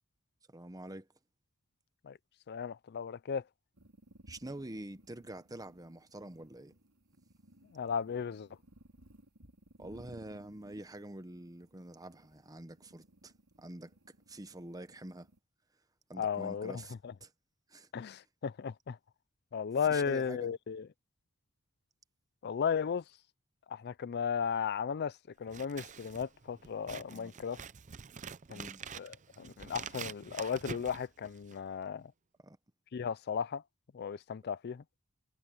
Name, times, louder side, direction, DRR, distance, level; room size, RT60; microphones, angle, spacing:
voice 1, 0.5-1.1 4.3-6.7 9.8-13.9 14.3-15.3 16.1-16.9 17.2-17.3 17.7-17.9 19.9-20.5 27.1-27.4 28.5-28.8 32.4-32.6, right 1 dB, 15° right, 1.0 m, -46 dB
voice 2, 2.5-3.4 7.7-8.5 16.2-17.1 17.9-19.0 19.5-20.9 22.4-23.0 23.7-27.6 28.5-28.7 28.9-32.1 32.9-33.6 33.9-34.8, left 6 dB, 50° left, 0.4 m, -35 dB
sound 1, 3.7-15.4, right 1 dB, 75° right, 4.9 m, -60 dB
Scissors, 25.4-31.7, right 6 dB, 35° right, 0.5 m, -46 dB
head